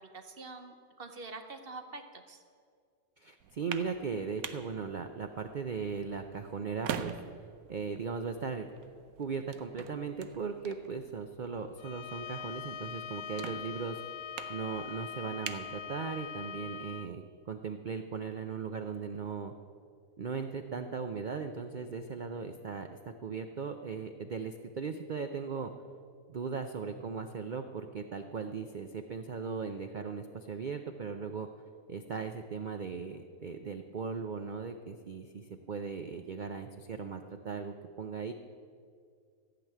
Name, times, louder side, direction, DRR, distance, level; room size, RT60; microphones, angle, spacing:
voice 1, 0.0-2.4, right 3 dB, 45° right, 6 dB, 0.8 m, -46 dB
voice 2, 3.2-7.1 7.7-8.7 9.2-14.0 14.5-19.5 20.2-25.7 26.3-31.5 31.9-38.3, right 5 dB, 90° right, 7 dB, 0.4 m, -38 dB
sound 1, 3.4-16.5, right 8 dB, 70° right, 1.1 m, -46 dB
Bowed string instrument, 11.8-17.1, left 8 dB, 80° left, 0.5 m, -42 dB
14.5 x 6.0 x 9.0 m, 2.2 s
omnidirectional pair, 1.6 m